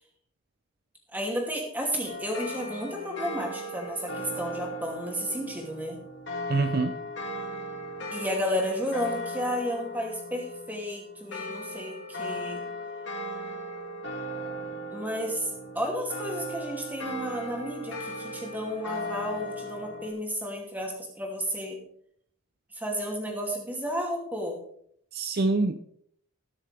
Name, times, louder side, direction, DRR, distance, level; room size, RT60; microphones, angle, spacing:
voice 1, 1.1-6.0 8.1-12.6 14.9-21.8 22.7-24.6, equal, 10° right, 0 dB, 2.7 m, -32 dB
sound 1, 2.1-20.1, equal, 55° left, 2.6 m, -37 dB
voice 2, 6.5-7.0 25.1-25.8, right 3 dB, 45° right, 8 dB, 0.6 m, -25 dB
20.5 x 7.3 x 3.4 m, 0.66 s
head